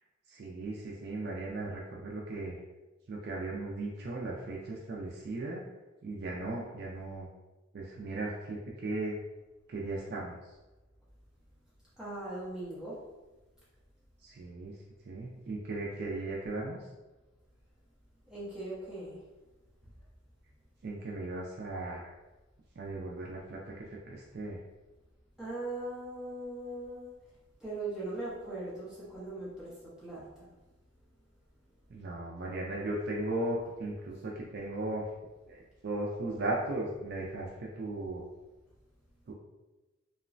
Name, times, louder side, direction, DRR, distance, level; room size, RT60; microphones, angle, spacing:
voice 1, 0.3-2.6 3.1-5.6 6.0-7.3 7.7-9.2 9.7-10.4 14.2-14.7 15.0-16.8 20.8-22.1 22.8-23.6 24.1-24.6 31.9-35.0 35.5-38.2 39.3-39.4, right 2 dB, 55° right, -3 dB, 0.4 m, -37 dB
voice 2, 12.0-13.0 18.3-19.2 25.4-27.1 27.6-30.5, right 2 dB, 5° right, -10 dB, 0.8 m, -40 dB
2.9 x 2.1 x 2.5 m, 1.1 s
head